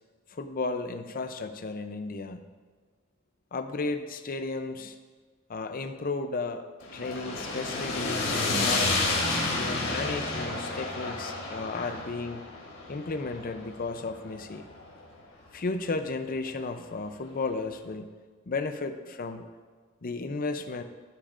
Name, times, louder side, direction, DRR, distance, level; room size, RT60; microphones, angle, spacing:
voice 1, 0.3-2.4 3.5-5.0 5.5-6.7 6.9-9.0 9.5-12.4 12.9-14.7 15.5-18.1 18.5-19.4 20.0-20.8, left 3 dB, 45° left, 8 dB, 0.6 m, -34 dB
sound 1, 6.8-15.0, left 2 dB, 75° left, 2.9 m, -31 dB
15.0 x 8.7 x 2.5 m, 1.5 s
head